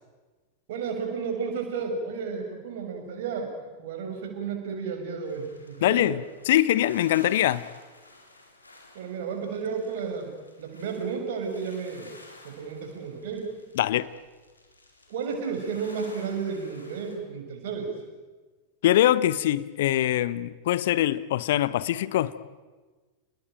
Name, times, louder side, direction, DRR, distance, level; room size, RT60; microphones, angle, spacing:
voice 1, 0.7-3.5 3.8-6.1 8.9-10.3 10.6-12.1 12.4-13.6 15.1-17.9, right 5 dB, 55° right, 4 dB, 6.7 m, -32 dB
Sea Water on pebbles, 5.2-17.2, left 2 dB, 80° left, 4.1 m, -52 dB
voice 2, 5.8-7.7 13.8-14.1 18.8-22.3, left 13 dB, 55° left, 18 dB, 0.9 m, -23 dB
30.0 x 20.0 x 9.1 m, 1.3 s
figure-of-eight pair, 90°, 0 cm